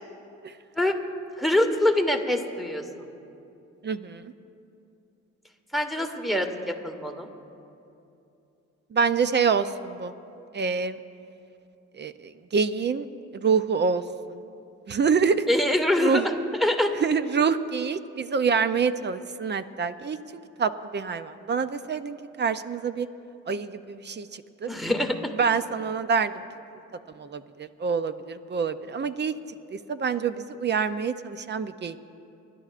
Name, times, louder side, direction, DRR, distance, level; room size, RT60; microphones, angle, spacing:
voice 1, 1.4-2.8 5.7-7.3 15.5-16.9 24.7-25.3, left 1 dB, ahead, 4 dB, 1.3 m, -24 dB
voice 2, 3.8-4.3 8.9-10.1 10.5-11.0 12.0-13.1 13.3-14.0 14.3-14.4 14.9-15.5 16.0-16.2 17.0-23.1 23.5-24.7 25.4-26.4 27.1-29.3 29.7-32.0, right 5 dB, 35° right, 12 dB, 0.5 m, -26 dB
30.0 x 11.5 x 2.5 m, 2.8 s
cardioid pair, 90°, 30 cm